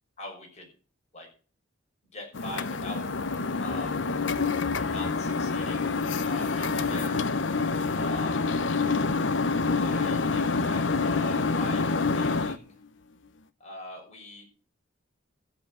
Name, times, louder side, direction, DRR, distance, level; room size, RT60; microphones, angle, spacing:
voice 1, 0.2-0.7 1.1-1.3 2.1-3.0 3.6-4.1 4.9-5.9 6.2-7.3 7.9-8.6 9.7-12.7 13.6-14.4, left 1 dB, 35° left, 0 dB, 6.4 m, -42 dB
sound 1, 2.3-12.6, left 4 dB, 70° left, 0.8 m, -27 dB
14.0 x 8.2 x 6.3 m, 0.37 s
head